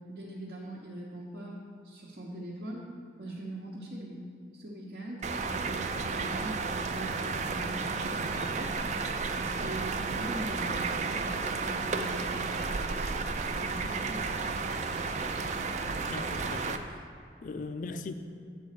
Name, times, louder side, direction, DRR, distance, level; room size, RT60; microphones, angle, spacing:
voice 1, 0.0-2.8 3.2-4.3 4.5-8.8 9.4-14.3, right 1 dB, 70° right, -6 dB, 0.9 m, -42 dB
sound 1, 5.2-16.8, right 4 dB, 40° right, 0.3 m, -32 dB
voice 2, 16.0-16.9 17.4-18.1, left 3 dB, 45° left, 9 dB, 0.3 m, -39 dB
8.4 x 4.1 x 6.5 m, 2.4 s
head